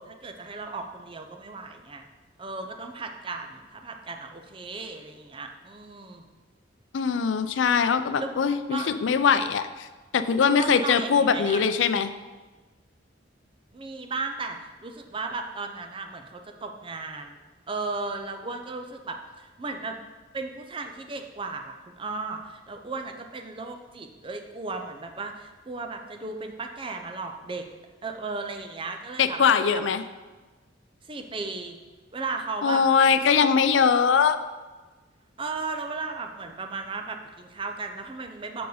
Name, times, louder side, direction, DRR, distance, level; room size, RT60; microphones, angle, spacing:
voice 1, 0.0-2.1 2.4-6.2 8.2-8.3 8.7-8.9 10.5-11.6 13.7-17.4 17.7-20.0 20.3-27.6 28.0-29.4 29.7-29.8 31.0-31.8 32.1-32.8 33.4-33.5 35.4-38.7, right 3 dB, 25° right, 5 dB, 0.5 m, -35 dB
voice 2, 6.9-9.9 10.1-12.1 29.2-30.0 32.6-34.4, left 6 dB, 75° left, 10 dB, 0.4 m, -22 dB
6.5 x 4.7 x 4.9 m, 1.3 s
head